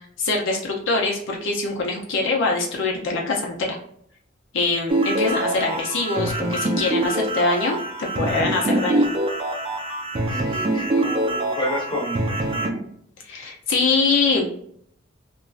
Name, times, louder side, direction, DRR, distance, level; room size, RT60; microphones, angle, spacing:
voice 1, 0.2-3.8 4.5-9.0 13.2-14.6, left 3 dB, 65° left, -1 dB, 0.6 m, -23 dB
sound 1, 4.9-12.7, right 1 dB, 30° right, 0.5 m, -24 dB
voice 2, 10.3-12.8, equal, 25° left, -2 dB, 0.9 m, -30 dB
3.0 x 2.5 x 2.3 m, 0.65 s
head